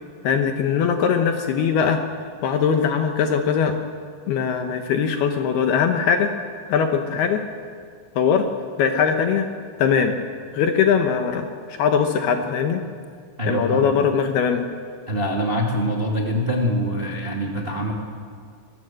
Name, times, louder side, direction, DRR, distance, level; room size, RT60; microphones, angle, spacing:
voice 1, 0.2-2.0 2.4-3.7 4.3-6.3 6.7-7.4 8.2-8.5 8.8-9.5 9.8-10.1 10.5-12.8 13.5-14.6, left 7 dB, 70° left, 5 dB, 2.5 m, -21 dB
voice 2, 13.4-13.9 15.1-17.9, equal, 70° right, 0 dB, 0.5 m, -24 dB
24.5 x 21.0 x 7.7 m, 2.1 s
omnidirectional pair, 5.8 m